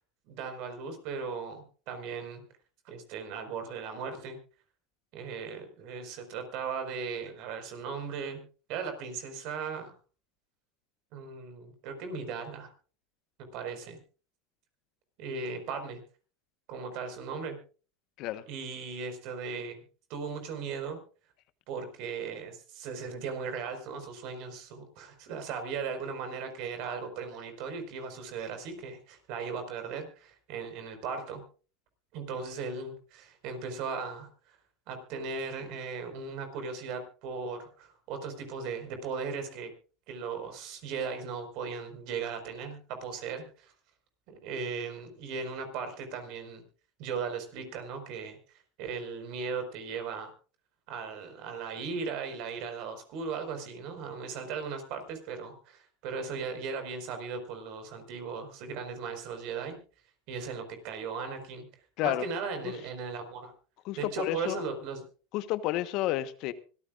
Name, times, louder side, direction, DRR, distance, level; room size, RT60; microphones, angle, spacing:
voice 1, 0.3-2.4 2.8-4.4 5.1-8.4 8.7-9.9 11.1-12.7 13.5-14.0 15.2-16.0 16.7-17.6 18.5-19.8 20.1-21.0 21.7-31.4 32.1-34.6 34.9-39.7 40.1-43.7 44.3-46.6 47.0-48.4 48.8-50.3 50.9-59.8 60.3-61.7 62.0-63.5 64.0-65.0, right 5 dB, 60° right, 8 dB, 4.9 m, -37 dB
voice 2, 63.8-64.6 65.3-66.5, left 15 dB, 55° left, 12 dB, 1.2 m, -31 dB
25.0 x 14.0 x 2.5 m, 0.37 s
supercardioid pair, 110°, 0 cm